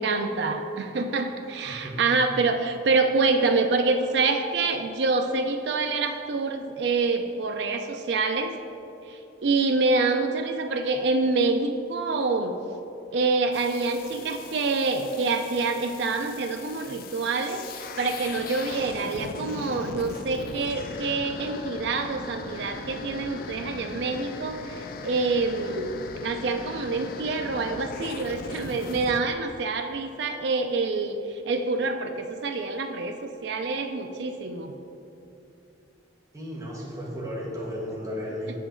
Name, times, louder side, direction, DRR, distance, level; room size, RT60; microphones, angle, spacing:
voice 1, 0.0-8.5 9.1-12.6 13.1-25.9 26.2-34.7, right 3 dB, 60° right, 6 dB, 0.4 m, -26 dB
voice 2, 1.6-2.0 36.3-38.6, equal, 15° right, -5 dB, 1.2 m, -34 dB
sound 1, 13.5-29.2, left 4 dB, 50° left, 0.3 m, -39 dB
6.5 x 5.0 x 3.8 m, 2.8 s
head